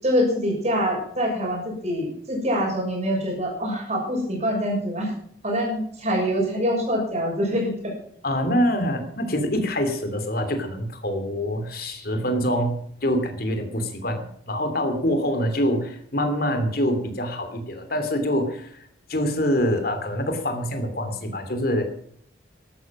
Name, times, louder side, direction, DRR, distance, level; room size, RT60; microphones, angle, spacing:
voice 1, 0.0-5.1 5.4-7.9, equal, 35° right, 0 dB, 6.8 m, -25 dB
voice 2, 8.2-21.8, equal, 50° left, 6 dB, 2.9 m, -25 dB
13.0 x 13.0 x 6.1 m, 0.63 s
head